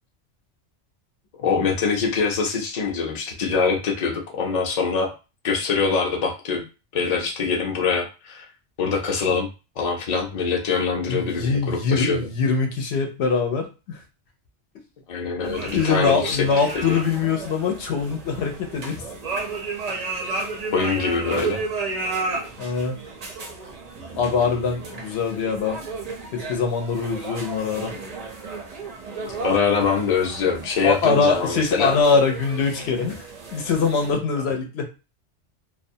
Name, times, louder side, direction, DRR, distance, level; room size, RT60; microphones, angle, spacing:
voice 1, 1.4-5.1 5.4-6.6 6.9-8.4 8.8-9.5 9.8-12.3 15.1-16.5 16.7-17.0 20.7-21.6 29.4-31.9, left 5 dB, 45° left, 1 dB, 0.6 m, -24 dB
voice 2, 11.0-14.0 15.7-19.1 22.6-23.0 24.2-25.8 26.3-27.9 30.8-33.3 33.5-34.9, left 5 dB, 70° left, 4 dB, 0.9 m, -23 dB
sound 1, 15.4-34.1, right 3 dB, 50° right, 0.4 m, -33 dB
2.4 x 2.2 x 2.6 m, 0.30 s
omnidirectional pair, 1.2 m